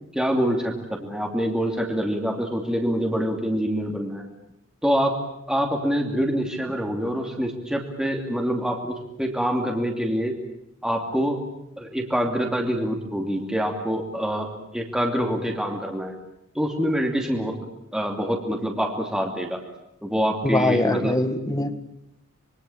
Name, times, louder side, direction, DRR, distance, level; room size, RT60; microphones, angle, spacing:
voice 1, 0.1-4.2 4.8-5.2 5.5-10.3 10.8-11.4 11.8-16.2 16.5-17.6 17.9-19.6 20.0-21.2, equal, 5° right, 1 dB, 2.8 m, -25 dB
voice 2, 20.4-21.8, left 1 dB, 15° left, 11 dB, 1.7 m, -23 dB
26.0 x 23.0 x 8.9 m, 0.81 s
head